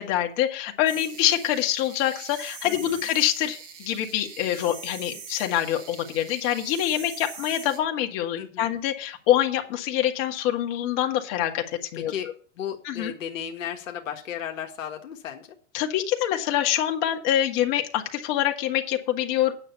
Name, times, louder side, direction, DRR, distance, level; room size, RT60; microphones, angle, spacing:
voice 1, 0.0-12.1 12.9-13.1 15.7-19.5, left 11 dB, 50° left, 4 dB, 2.0 m, -25 dB
sound 1, 0.9-7.8, right 5 dB, 70° right, 5.3 m, -43 dB
voice 2, 2.6-3.0 8.4-8.7 11.9-12.3 12.5-15.5, left 9 dB, 80° left, 3 dB, 1.6 m, -35 dB
9.6 x 6.8 x 6.9 m, 0.41 s
hypercardioid pair, 120°, 38 cm